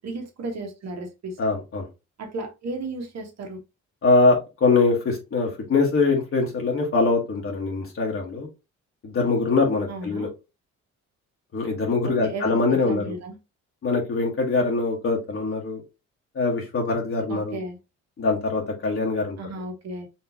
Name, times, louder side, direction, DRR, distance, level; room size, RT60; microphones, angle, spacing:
voice 1, 0.0-1.4 2.2-3.6 9.9-10.3 12.0-13.4 17.3-17.8 19.4-20.1, right 2 dB, 60° right, 4 dB, 1.5 m, -34 dB
voice 2, 1.4-1.9 4.0-8.5 9.0-10.3 11.5-13.1 13.8-15.8 16.3-17.6 18.2-19.4, left 3 dB, 45° left, -1 dB, 1.4 m, -23 dB
4.3 x 3.1 x 2.8 m, 0.26 s
cardioid pair, 90°, 30 cm